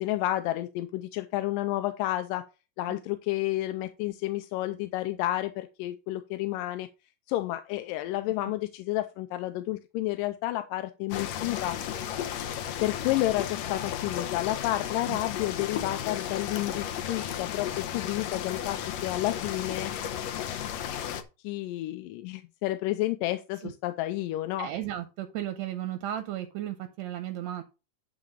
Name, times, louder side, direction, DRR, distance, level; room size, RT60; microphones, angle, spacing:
voice 1, 0.0-2.5 2.8-6.9 7.3-11.8 12.8-19.9 20.3-20.6 21.4-24.7, left 16 dB, 85° left, 9 dB, 2.2 m, -31 dB
sound 1, 11.1-21.2, left 10 dB, 70° left, 1.7 m, -34 dB
voice 2, 24.6-27.6, right 12 dB, 70° right, 8 dB, 1.8 m, -34 dB
11.0 x 3.8 x 5.5 m, 0.30 s
omnidirectional pair, 3.9 m